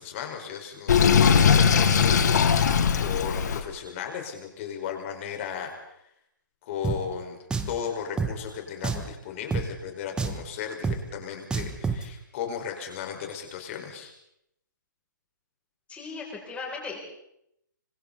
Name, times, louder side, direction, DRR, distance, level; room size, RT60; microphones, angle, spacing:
voice 1, 0.0-2.4 3.0-6.0 6.7-7.4 7.7-14.1, left 8 dB, 40° left, 3 dB, 5.1 m, -36 dB
Sink (filling or washing), 0.9-3.6, left 6 dB, 55° left, 2.3 m, -20 dB
Drum, 6.8-7.0 7.5-7.8 8.2-8.3 8.8-9.1 9.5-9.7 10.2-10.4 10.8-11.0 11.5-12.0, right 5 dB, 10° right, 1.5 m, -28 dB
voice 2, 15.9-17.0, left 4 dB, 10° left, -2 dB, 6.9 m, -37 dB
26.5 x 25.5 x 4.2 m, 0.78 s
figure-of-eight pair, 135°, 11 cm